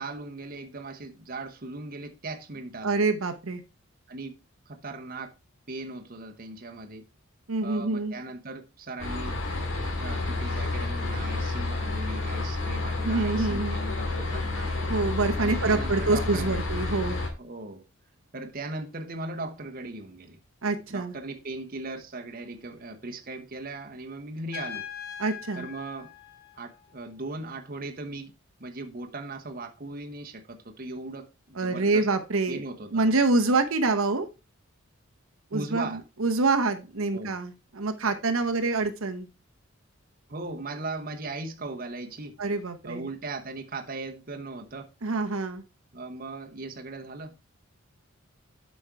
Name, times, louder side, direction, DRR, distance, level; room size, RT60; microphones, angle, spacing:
voice 1, 0.0-3.0 4.1-4.4 4.7-5.3 5.7-7.0 7.6-9.4 10.0-14.7 15.4-16.6 17.4-17.8 18.3-20.4 20.9-24.9 25.6-26.1 26.6-28.3 28.6-32.1 32.5-33.2 35.5-36.0 37.1-37.4 40.3-42.4 42.8-44.9 45.9-47.4, right 2 dB, 40° right, 1.0 m, -38 dB
voice 2, 2.8-3.6 7.5-8.1 13.0-13.8 14.9-17.2 20.6-21.1 25.2-25.7 31.6-32.6 32.9-34.3 35.5-39.3 42.4-43.1 45.0-45.6, right 3 dB, 75° right, 0.9 m, -26 dB
sound 1, 9.0-17.3, left 2 dB, 65° left, 2.2 m, -30 dB
Trumpet, 24.5-27.2, left 8 dB, 45° left, 1.1 m, -41 dB
7.6 x 5.2 x 4.6 m
head